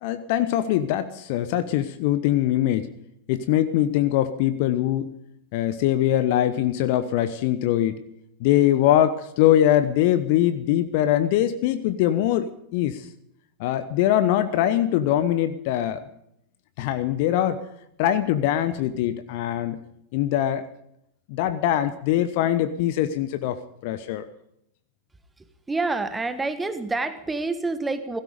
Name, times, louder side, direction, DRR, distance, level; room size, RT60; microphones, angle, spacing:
voice 1, 0.0-2.9 3.3-5.1 5.5-8.0 8.4-13.1 13.6-16.0 16.8-17.6 18.0-19.8 20.1-20.7 21.3-24.2, left 12 dB, 50° left, 12 dB, 0.9 m, -22 dB
voice 2, 25.4-28.2, right 3 dB, 10° right, 11 dB, 1.4 m, -28 dB
17.0 x 16.0 x 5.2 m, 0.76 s
figure-of-eight pair, 90°, 0 cm